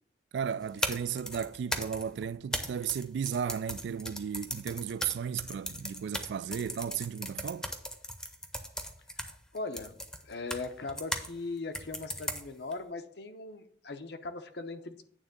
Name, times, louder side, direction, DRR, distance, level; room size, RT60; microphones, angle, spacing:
voice 1, 0.3-7.7, right 7 dB, 75° right, 0.3 m, -35 dB
sound 1, 0.6-11.3 11.7-12.7, equal, 5° left, 0.7 m, -38 dB
voice 2, 9.2-10.0 10.2-15.0, left 3 dB, 65° left, 0.8 m, -39 dB
9.1 x 3.6 x 6.6 m
head